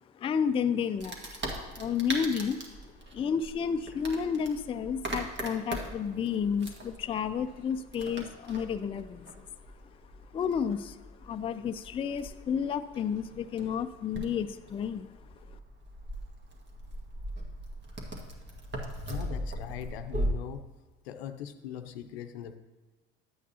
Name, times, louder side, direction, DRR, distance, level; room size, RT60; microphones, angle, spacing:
voice 1, 0.1-1.2 1.7-9.4 10.3-15.1 15.5-15.6, left 7 dB, 20° left, 10 dB, 0.3 m, -31 dB
Wood, 1.0-20.3, right 1 dB, 35° right, 1.6 m, -40 dB
voice 2, 19.1-20.6 21.1-22.6, left 9 dB, 80° left, 10 dB, 0.6 m, -40 dB
11.0 x 8.2 x 2.8 m, 1.3 s
hypercardioid pair, 65°, 31 cm